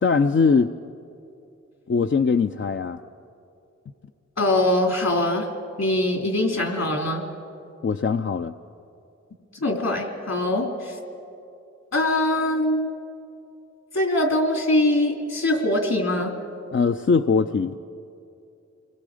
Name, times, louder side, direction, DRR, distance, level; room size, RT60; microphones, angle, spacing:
voice 1, 0.0-0.7 1.9-3.0 7.8-8.5 16.7-17.8, left 5 dB, 45° left, 7 dB, 0.5 m, -21 dB
voice 2, 4.4-5.5 5.8-7.2 9.5-11.0 11.9-12.9 13.9-16.3, left 1 dB, 60° left, 3 dB, 3.1 m, -22 dB
29.0 x 21.5 x 5.0 m, 2.7 s
cardioid pair, 60°, 29 cm